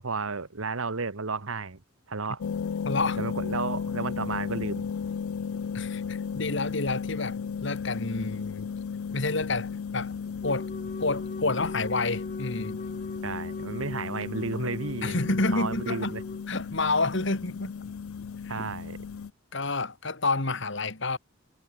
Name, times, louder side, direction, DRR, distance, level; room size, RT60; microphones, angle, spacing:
voice 1, 0.0-1.8 2.1-2.4 3.2-4.8 13.2-16.2 18.5-19.0, right 4 dB, 75° right, 1.4 m, -33 dB
sound 1, 2.4-19.3, left 6 dB, 85° left, 0.4 m, -35 dB
voice 2, 2.9-3.3 5.7-8.7 9.1-10.2 10.4-10.7 11.0-12.8 15.0-16.1 16.5-17.7 18.6-18.7 19.5-21.2, left 3 dB, 60° left, 2.3 m, -29 dB
Wind instrument woodwind instrument, 10.4-16.5, left 2 dB, 35° left, 0.9 m, -40 dB
head